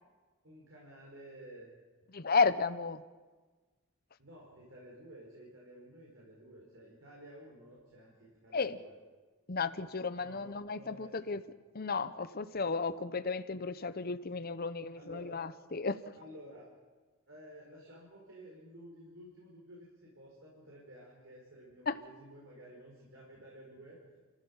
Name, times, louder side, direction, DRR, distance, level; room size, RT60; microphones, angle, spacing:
voice 1, 0.4-1.7 4.2-8.9 10.2-11.4 12.6-12.7 15.0-15.3 16.2-16.7 17.3-24.0, right 1 dB, 65° right, -3 dB, 5.2 m, -53 dB
voice 2, 2.1-3.0 8.5-8.8 9.5-11.4 11.7-16.1 21.9-22.0, left 4 dB, 45° left, 12 dB, 0.8 m, -33 dB
29.5 x 15.0 x 7.3 m, 1.3 s
head